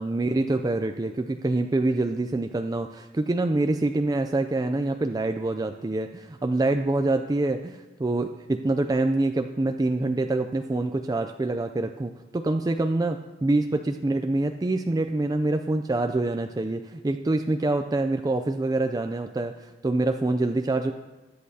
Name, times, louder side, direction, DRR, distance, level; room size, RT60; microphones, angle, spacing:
voice 1, 0.0-7.7 8.0-20.9, right 2 dB, 20° right, 6 dB, 0.3 m, -26 dB
21.0 x 8.5 x 2.8 m, 1.1 s
head